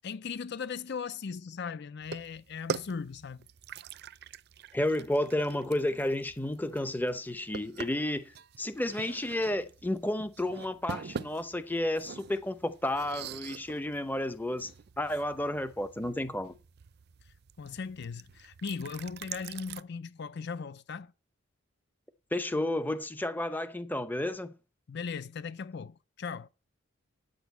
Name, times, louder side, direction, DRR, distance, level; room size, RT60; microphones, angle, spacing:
voice 1, 0.0-3.5 17.2-21.1 24.9-26.5, left 5 dB, 55° left, 0.5 m, -38 dB
sound 1, 2.0-19.8, right 6 dB, 50° right, 0.4 m, -44 dB
voice 2, 4.7-14.7 15.0-16.5 22.3-24.5, left 1 dB, 10° left, 0.7 m, -31 dB
8.9 x 6.4 x 8.1 m
head